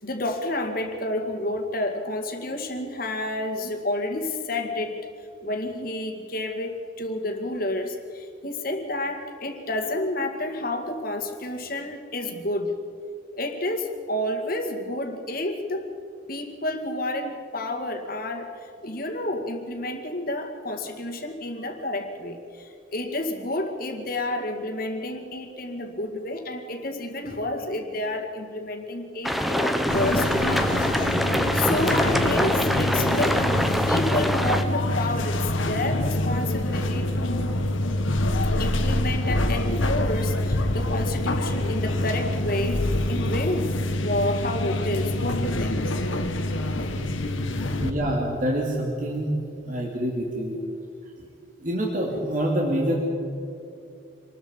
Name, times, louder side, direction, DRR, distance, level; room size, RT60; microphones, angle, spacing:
voice 1, 0.0-5.0 5.4-12.8 13.4-15.9 16.3-18.5 18.8-30.6 31.5-33.4 33.9-37.6 38.6-45.8 46.8-47.0, left 1 dB, 45° left, 4 dB, 2.1 m, -30 dB
sound 1, 29.2-34.6, equal, ahead, 1.0 m, -24 dB
sound 2, 29.9-47.9, left 1 dB, 85° left, 1.6 m, -26 dB
voice 2, 47.5-50.6 51.2-51.3 51.6-53.0, right 1 dB, 40° right, -2 dB, 2.7 m, -27 dB
26.0 x 20.5 x 5.3 m, 2.6 s
head